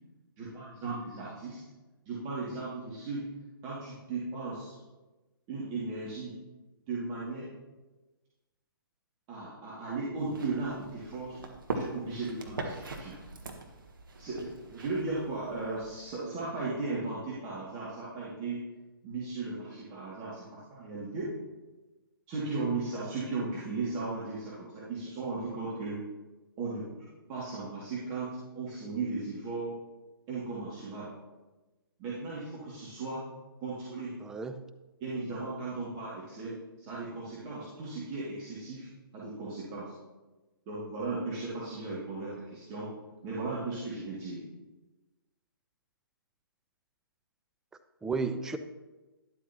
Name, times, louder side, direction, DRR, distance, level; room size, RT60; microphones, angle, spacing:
voice 1, 0.4-1.6 2.1-3.3 3.6-4.8 5.5-6.3 6.9-7.5 9.3-11.4 11.7-13.1 14.2-18.6 19.0-21.3 22.3-26.0 26.6-26.9 27.3-29.7 30.3-31.1 32.0-33.2 33.6-34.1 35.0-38.9 39.1-39.9 40.7-42.9 43.2-44.4, right 3 dB, 25° right, -8 dB, 2.4 m, -36 dB
sound 1, 10.2-16.1, right 2 dB, 65° right, 1.6 m, -41 dB
voice 2, 34.2-34.7 48.0-48.6, right 4 dB, 5° right, 8 dB, 0.3 m, -33 dB
12.0 x 11.5 x 3.0 m, 1.2 s
figure-of-eight pair, 130°, 12 cm